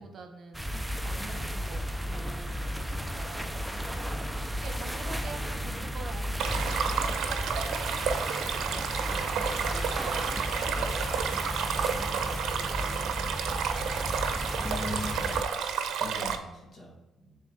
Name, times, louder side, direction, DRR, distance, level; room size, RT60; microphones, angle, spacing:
voice 1, 0.0-3.6 4.5-8.0 9.1-11.1 11.6-13.8, right 4 dB, 55° right, 5 dB, 1.0 m, -46 dB
sound 1, 0.5-15.4, equal, 5° right, 0.5 m, -34 dB
Stream, 6.4-16.4, right 7 dB, 80° right, 0.6 m, -31 dB
voice 2, 14.6-15.3 15.6-17.4, left 1 dB, 45° left, -2 dB, 2.1 m, -40 dB
6.9 x 3.7 x 4.7 m, 1.1 s
cardioid pair, 90°, 0 cm